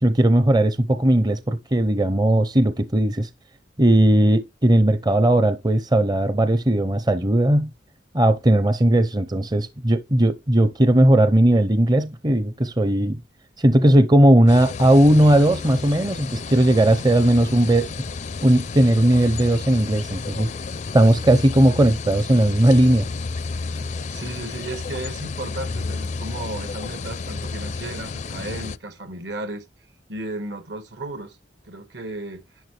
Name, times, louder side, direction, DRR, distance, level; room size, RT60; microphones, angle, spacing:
voice 1, 0.0-3.3 3.8-7.7 8.1-13.2 13.6-17.9 18.4-20.5 20.9-23.1, right 1 dB, 25° right, 0.6 m, -17 dB
sound 1, 14.5-28.8, left 4 dB, 40° left, 0.4 m, -32 dB
voice 2, 24.1-29.6 30.1-31.4 31.6-32.4, right 2 dB, 70° right, 1.6 m, -34 dB
11.0 x 6.4 x 3.3 m
head